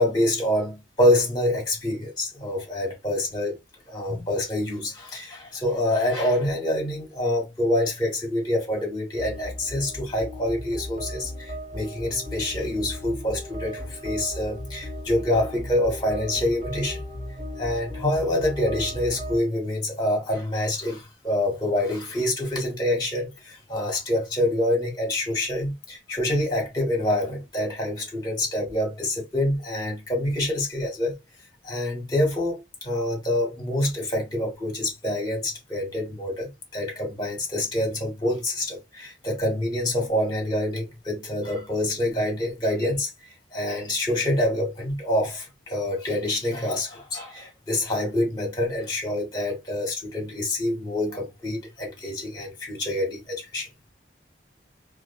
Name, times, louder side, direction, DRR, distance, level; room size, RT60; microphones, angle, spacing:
voice 1, 0.0-3.6 3.9-17.0 17.6-31.2 31.6-43.1 43.5-53.7, left 1 dB, 25° left, 1.1 m, -26 dB
sound 1, 9.1-19.4, equal, 45° right, 1.7 m, -36 dB
2.5 x 2.4 x 2.3 m
head